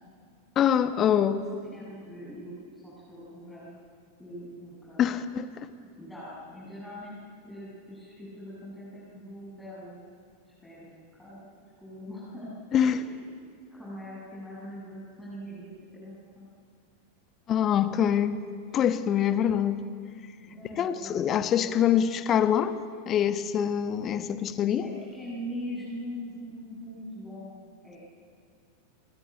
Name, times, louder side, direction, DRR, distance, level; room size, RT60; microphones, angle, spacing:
voice 1, 0.5-1.5 5.0-5.5 12.7-13.0 17.5-18.4 18.7-19.8 20.7-22.7 23.1-24.9, left 9 dB, 30° left, 11 dB, 1.4 m, -24 dB
voice 2, 1.7-2.6 2.8-3.8 4.2-5.0 5.9-10.0 10.6-11.4 11.8-12.6 12.9-16.5 20.4-21.9 24.8-28.0, equal, 5° left, -8 dB, 7.0 m, -42 dB
27.5 x 21.0 x 9.0 m, 2.2 s
figure-of-eight pair, 90°, 0 cm